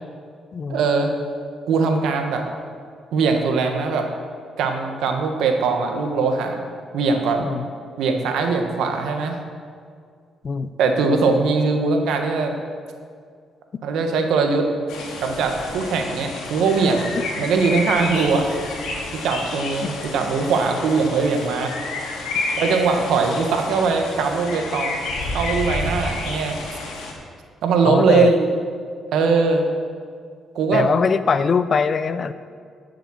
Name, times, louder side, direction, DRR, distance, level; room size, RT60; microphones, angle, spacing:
voice 1, 0.7-1.1 1.7-2.4 3.1-4.0 4.6-6.6 6.9-7.5 8.0-9.4 10.8-12.5 13.8-14.7 15.2-18.5 19.2-21.7 22.6-25.0 25.3-26.6 27.6-28.5 29.1-29.7 30.5-30.9, right 4 dB, 80° right, 4 dB, 1.4 m, -21 dB
sound 1, 14.9-27.1, left 2 dB, 90° left, 2.1 m, -30 dB
voice 2, 27.8-28.3 30.7-32.3, left 5 dB, 45° left, 13 dB, 0.5 m, -22 dB
12.0 x 6.8 x 6.4 m, 2.1 s
cardioid pair, 90°, 0 cm